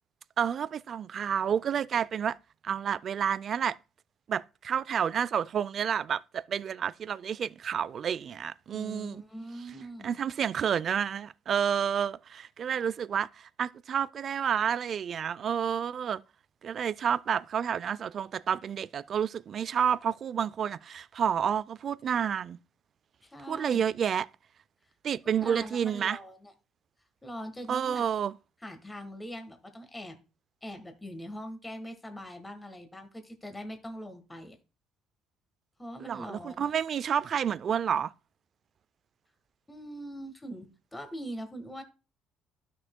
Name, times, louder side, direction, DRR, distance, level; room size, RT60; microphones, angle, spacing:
voice 1, 0.4-2.4 2.6-3.8 4.3-9.2 10.0-16.2 16.6-22.6 23.5-24.3 25.0-26.2 27.7-28.3 36.0-38.1, right 8 dB, 45° right, 0.4 m, -30 dB
voice 2, 8.7-10.2 23.2-23.9 25.4-26.5 27.2-28.0 28.6-30.2 30.6-34.6 35.8-36.7 39.7-41.8, equal, 10° left, 1.4 m, -42 dB
12.5 x 6.1 x 2.2 m
cardioid pair, 110°, 0 cm